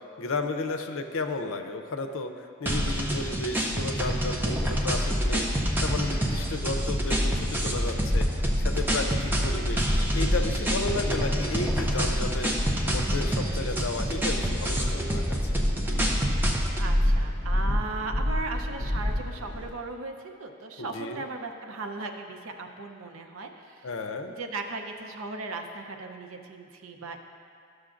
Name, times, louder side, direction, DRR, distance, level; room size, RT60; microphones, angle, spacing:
voice 1, 0.2-5.5 5.8-8.3 8.6-9.9 10.1-15.4 20.8-21.2 23.8-24.3, left 3 dB, 80° left, 6 dB, 0.5 m, -33 dB
sound 1, 2.7-16.9, right 1 dB, 10° right, 0.5 m, -29 dB
sound 2, 3.7-19.7, equal, 55° right, 1.3 m, -29 dB
voice 2, 16.8-23.9 24.4-27.2, right 3 dB, 85° right, 4 dB, 0.6 m, -37 dB
13.0 x 6.3 x 2.5 m, 2.3 s
head